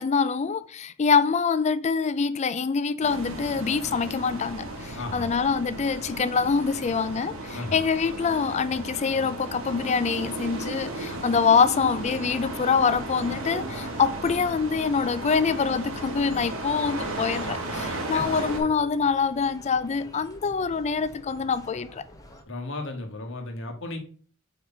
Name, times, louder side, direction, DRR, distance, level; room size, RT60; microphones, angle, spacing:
voice 1, 0.0-22.0, left 5 dB, 35° left, 0.4 m, -25 dB
sound 1, 3.0-18.6, right 2 dB, 90° right, 1.5 m, -35 dB
voice 2, 4.9-5.3 7.5-7.8 18.1-18.2 22.5-24.0, left 2 dB, 65° left, 1.4 m, -34 dB
sound 2, 12.0-22.4, left 1 dB, 15° left, 0.9 m, -47 dB
4.6 x 4.1 x 5.5 m
head